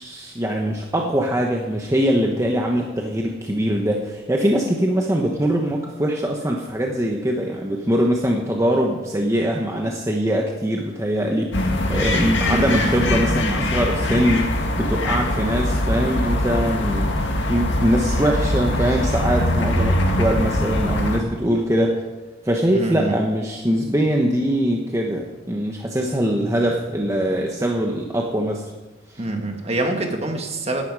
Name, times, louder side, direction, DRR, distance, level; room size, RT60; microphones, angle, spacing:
voice 1, 0.0-14.4 14.7-22.0 22.4-28.7 29.1-29.2, equal, 15° right, 0 dB, 1.1 m, -22 dB
sound 1, 11.5-21.2, left 1 dB, 70° left, 2.0 m, -22 dB
voice 2, 12.5-12.9 22.7-23.2 29.2-30.8, right 2 dB, 35° right, 4 dB, 1.7 m, -25 dB
17.0 x 11.5 x 4.8 m, 1.2 s
head